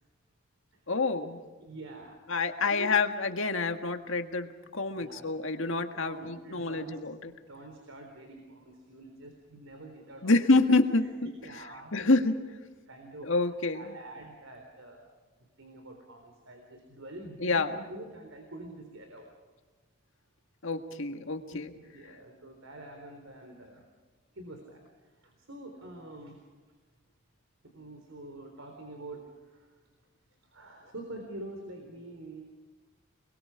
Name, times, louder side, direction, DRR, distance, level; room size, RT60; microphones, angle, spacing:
voice 1, 0.9-1.4 2.3-7.3 10.2-11.3 11.9-12.3 13.2-14.0 17.4-17.8 20.6-21.7, left 3 dB, 70° left, 6 dB, 1.8 m, -27 dB
voice 2, 1.6-2.2 2.7-2.9 4.9-5.2 6.0-7.0 7.5-10.3 11.0-11.1 11.4-12.2 12.9-15.0 15.6-19.3 21.5-23.8 24.3-26.4 27.6-29.7 30.5-32.4, right 1 dB, 75° right, 3 dB, 3.9 m, -46 dB
29.0 x 21.5 x 5.0 m, 1.3 s
head